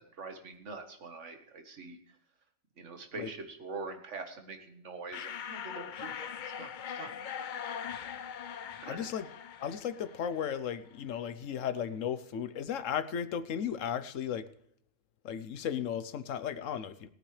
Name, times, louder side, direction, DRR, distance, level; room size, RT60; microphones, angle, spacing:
voice 1, 0.0-2.0 2.8-7.1 8.8-9.1, right 3 dB, 65° right, 5 dB, 1.8 m, -44 dB
sound 1, 5.1-10.6, left 8 dB, 55° left, 0.6 m, -41 dB
voice 2, 8.8-9.3 9.6-14.5 15.2-17.1, left 8 dB, 70° left, 13 dB, 1.2 m, -35 dB
20.5 x 9.1 x 3.3 m, 0.66 s
omnidirectional pair, 1.4 m